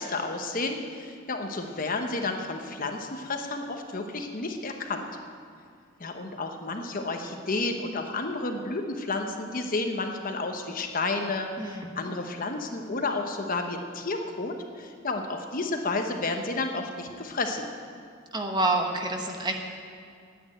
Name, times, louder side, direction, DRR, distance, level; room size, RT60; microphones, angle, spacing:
voice 1, 0.0-5.1 6.0-17.7, left 3 dB, 45° left, 4 dB, 1.0 m, -31 dB
voice 2, 11.6-12.1 18.3-19.5, right 2 dB, 20° right, 3 dB, 1.1 m, -28 dB
10.0 x 9.5 x 9.0 m, 2.3 s
head